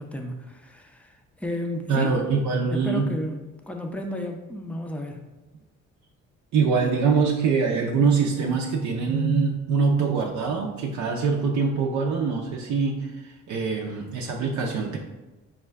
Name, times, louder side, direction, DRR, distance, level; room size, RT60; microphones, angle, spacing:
voice 1, 0.0-2.1 2.7-5.2, left 1 dB, 5° left, 3 dB, 0.5 m, -33 dB
voice 2, 1.9-3.1 6.5-13.1 13.5-15.0, right 5 dB, 70° right, 0 dB, 0.5 m, -23 dB
5.4 x 2.2 x 3.4 m, 1.1 s
cardioid pair, 90°, 30 cm